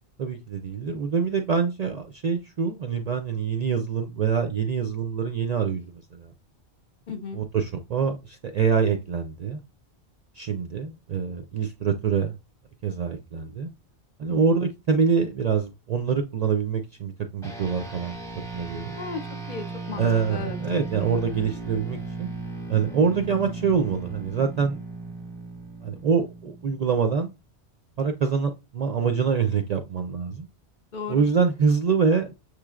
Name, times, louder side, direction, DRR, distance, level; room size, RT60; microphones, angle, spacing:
voice 1, 0.2-6.3 7.3-9.6 10.4-12.3 12.8-13.7 14.2-18.1 18.5-18.9 20.0-22.4 22.7-24.8 25.8-27.3 28.0-30.5 31.1-32.3, right 6 dB, 55° right, 0.4 m, -25 dB
voice 2, 7.1-7.4 14.3-14.6 18.9-20.6 30.9-31.3, left 5 dB, 55° left, 0.7 m, -36 dB
sound 1, 17.4-27.1, right 3 dB, 5° left, 0.8 m, -37 dB
6.6 x 3.2 x 2.4 m
omnidirectional pair, 1.1 m